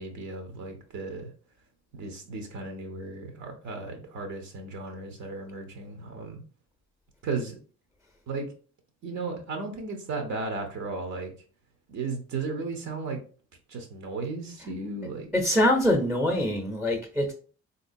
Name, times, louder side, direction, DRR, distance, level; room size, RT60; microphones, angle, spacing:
voice 1, 0.0-1.3 1.9-6.4 7.2-7.6 8.3-8.4 9.0-11.3 11.9-13.2 13.7-15.3, right 3 dB, 65° right, 0.9 m, -35 dB
voice 2, 15.3-17.3, left 1 dB, ahead, 0.6 m, -24 dB
3.6 x 2.7 x 2.6 m
cardioid pair, 90°, 30 cm